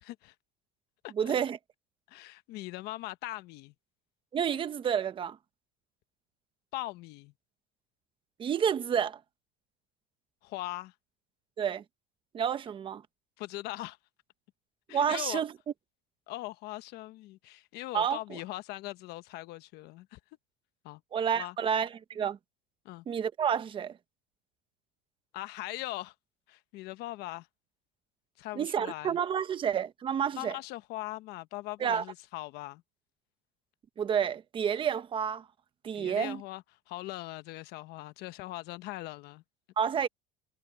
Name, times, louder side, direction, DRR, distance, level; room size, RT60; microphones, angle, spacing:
voice 1, 0.0-0.3 1.0-1.3 2.1-3.7 6.7-7.3 10.4-10.9 13.4-14.0 14.9-15.4 16.3-20.2 20.8-21.0 21.3-21.6 22.8-23.0 25.3-26.1 26.5-27.5 28.4-29.2 30.3-32.8 35.9-39.4, left 18 dB, 55° left, 1.0 m, -40 dB
voice 2, 1.2-1.6 4.3-5.4 8.4-9.2 11.6-11.8 12.3-13.0 14.9-15.5 17.9-18.4 21.1-22.4 23.1-24.0 28.6-30.6 31.8-32.0 34.0-35.4 35.8-36.4 39.8-40.1, right 8 dB, 25° right, 1.0 m, -29 dB
cardioid pair, 155°, 20 cm